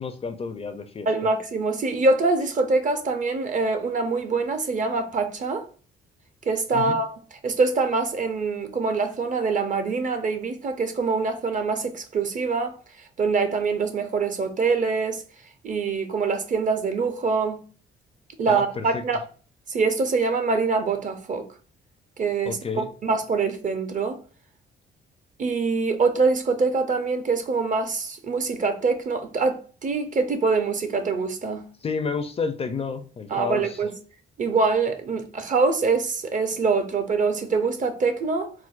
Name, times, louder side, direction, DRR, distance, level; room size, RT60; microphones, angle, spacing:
voice 1, 0.0-1.1 6.7-7.0 18.5-19.0 22.4-22.9 31.8-33.8, left 5 dB, 30° left, 0.4 m, -30 dB
voice 2, 1.1-5.7 6.5-12.7 13.2-15.2 15.6-17.6 18.4-19.2 19.7-21.5 22.2-24.2 25.4-31.6 33.3-33.9 34.4-38.5, right 4 dB, 40° right, 0.6 m, -24 dB
4.4 x 2.0 x 2.4 m
cardioid pair, 90°, 20 cm